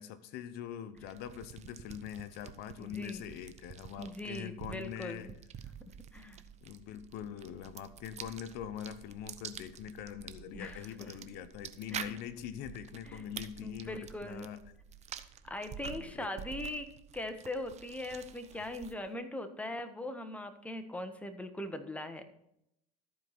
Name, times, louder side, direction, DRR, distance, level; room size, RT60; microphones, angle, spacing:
voice 1, 0.0-5.3 6.6-14.6 15.8-16.3 18.5-18.6, left 9 dB, 65° left, 12 dB, 0.9 m, -43 dB
sound 1, 1.0-19.1, right 9 dB, 40° right, 0.7 m, -48 dB
voice 2, 2.8-3.2 4.0-5.3 6.1-6.4 10.5-11.1 11.9-12.0 13.0-13.2 13.6-14.5 15.4-16.9 17.1-22.2, left 1 dB, 5° left, 7 dB, 1.2 m, -40 dB
13.5 x 4.7 x 4.2 m, 0.78 s
supercardioid pair, 90°, 18 cm